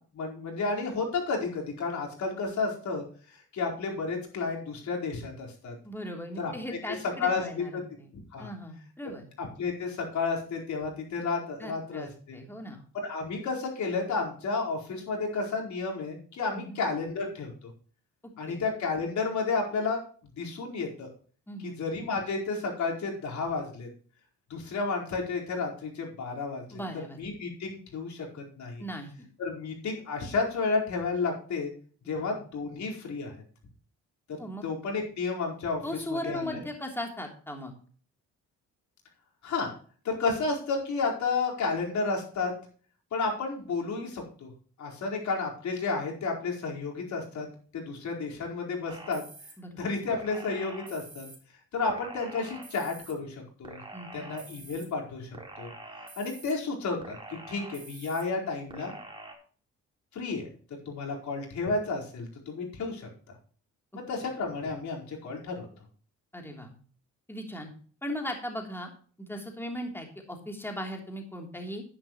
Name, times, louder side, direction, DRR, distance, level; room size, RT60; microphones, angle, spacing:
voice 1, 0.1-3.0 3.5-5.7 6.4-6.9 7.2-7.4 7.7-7.8 8.3-8.5 9.6-12.4 13.0-17.7 18.4-20.0 20.4-21.1 21.6-23.9 24.5-26.8 27.2-28.8 29.4-31.7 32.1-33.3 34.3-35.8 36.1-36.6 39.4-39.7 40.0-42.5 43.1-44.5 44.8-47.5 47.7-49.2 49.8-51.3 51.7-53.8 54.1-55.3 55.6-55.7 56.2-58.9 60.1-60.5 60.9-63.1 63.9-65.7, left 4 dB, 65° left, 0 dB, 4.6 m, -32 dB
voice 2, 5.8-8.1 8.4-9.2 11.6-12.8 16.5-16.8 18.4-18.6 21.5-21.8 26.7-27.2 28.8-29.3 32.0-32.2 34.4-34.6 35.8-37.7 49.6-49.7 53.9-54.3 66.3-66.7 67.3-67.7 68.0-68.9 69.2-71.8, equal, 5° left, 2 dB, 3.3 m, -38 dB
sound 1, 48.9-49.5 50.1-51.4 51.9-53.1 53.6-54.9 55.3-56.5 57.0-58.2 58.7-59.3, right 2 dB, 15° right, 3.9 m, -46 dB
11.0 x 10.5 x 3.1 m, 0.43 s
cardioid pair, 90°, 30 cm